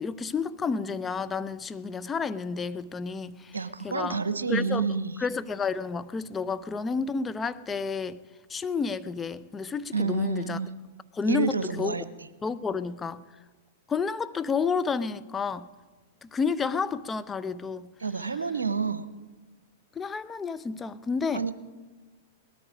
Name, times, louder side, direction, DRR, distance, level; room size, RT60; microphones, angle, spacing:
voice 1, 0.0-3.6 3.8-4.2 4.5-4.9 5.2-8.2 8.5-10.6 11.1-12.0 12.4-13.2 13.9-15.7 16.2-17.9 20.0-21.4, left 5 dB, 15° left, 0.6 m, -30 dB
voice 2, 3.5-5.2 9.9-10.7 11.3-12.0 18.0-19.1 21.3-21.5, right 5 dB, 85° right, 0.8 m, -29 dB
19.5 x 13.0 x 5.1 m
hypercardioid pair, 105°, 0 cm